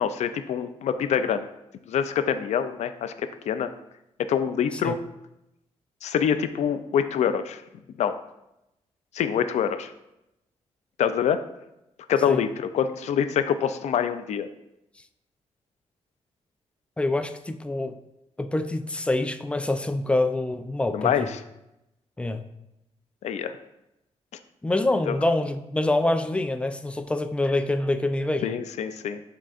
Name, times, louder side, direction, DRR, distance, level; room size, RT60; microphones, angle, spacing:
voice 1, 0.0-1.5 1.9-3.7 4.3-5.0 6.0-7.6 8.0-8.2 9.1-9.9 11.0-11.4 12.1-14.5 20.9-21.4 23.2-23.6 25.1-25.2 28.4-29.2, left 8 dB, 80° left, 10 dB, 0.5 m, -25 dB
voice 2, 17.0-17.9 18.4-21.3 22.2-22.4 24.6-28.5, left 2 dB, 10° left, 8 dB, 0.4 m, -26 dB
11.0 x 3.7 x 2.5 m, 0.88 s
cardioid pair, 105°, 12 cm